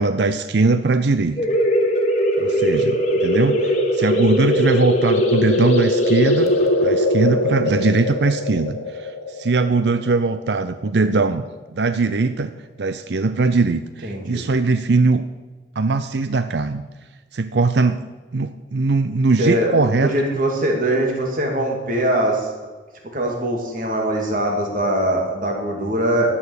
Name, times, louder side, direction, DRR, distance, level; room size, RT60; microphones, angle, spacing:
voice 1, 0.0-1.4 2.4-6.5 6.8-11.4 11.7-12.5 12.8-15.3 15.8-16.8 17.3-18.0 18.3-20.1, right 3 dB, 65° right, 11 dB, 0.5 m, -20 dB
sound 1, 1.4-10.7, left 1 dB, 40° left, 1.7 m, -20 dB
voice 2, 14.0-14.4 19.4-22.5 23.1-26.3, right 1 dB, 45° right, 1 dB, 2.6 m, -22 dB
12.5 x 7.1 x 8.7 m, 1.3 s
head